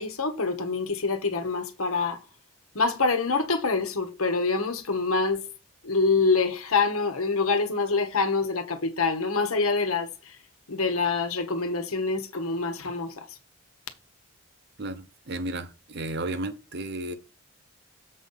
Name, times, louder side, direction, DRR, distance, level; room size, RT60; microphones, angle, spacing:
voice 1, 0.0-2.2 2.7-5.5 5.8-10.4 10.7-13.4, left 4 dB, 85° left, 1.2 m, -26 dB
voice 2, 14.8-17.2, right 2 dB, 50° right, 0.8 m, -33 dB
7.4 x 4.0 x 5.6 m
head